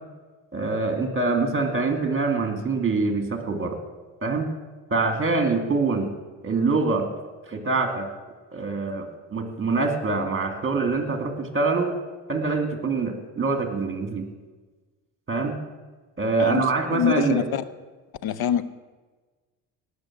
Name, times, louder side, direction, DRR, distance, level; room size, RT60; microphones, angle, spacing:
voice 1, 0.5-3.8 4.2-4.5 4.9-6.1 6.4-7.1 7.5-8.1 8.5-12.0 12.3-14.2 15.3-15.6 16.2-17.4, right 3 dB, 30° right, 6 dB, 2.6 m, -24 dB
voice 2, 16.9-17.6 18.2-18.6, left 9 dB, 65° left, 15 dB, 0.9 m, -24 dB
18.0 x 6.8 x 7.6 m, 1.3 s
cardioid pair, 80°, 40 cm